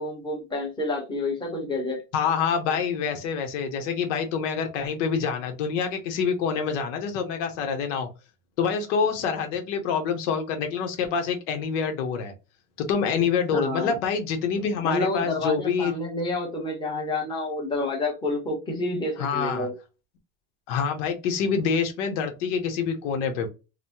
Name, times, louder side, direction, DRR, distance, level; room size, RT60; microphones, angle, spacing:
voice 1, 0.0-2.0 13.5-14.0 14.8-19.7, left 2 dB, 10° left, 1.0 m, -29 dB
voice 2, 2.1-8.1 8.6-12.3 12.8-15.9 19.2-19.7 20.7-23.5, left 6 dB, 75° left, 1.0 m, -26 dB
3.0 x 2.2 x 2.7 m
supercardioid pair, 140°, 37 cm